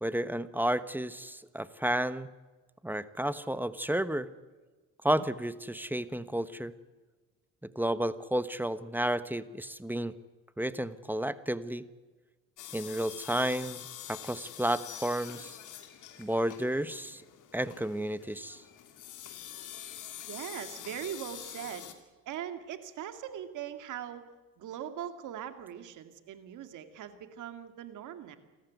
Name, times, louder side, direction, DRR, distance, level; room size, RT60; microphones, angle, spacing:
voice 1, 0.0-2.3 2.8-4.3 5.0-6.7 7.7-10.1 10.6-11.9 12.7-15.6 16.2-17.2 17.5-18.6, right 1 dB, 5° right, 13 dB, 1.1 m, -32 dB
sound 1, 12.6-21.9, left 11 dB, 85° left, 2.5 m, -46 dB
voice 2, 20.3-21.9 22.3-24.3 24.6-28.4, right 10 dB, 85° right, 9 dB, 2.2 m, -40 dB
27.0 x 14.0 x 9.3 m, 1.3 s
cardioid pair, 90°, 30 cm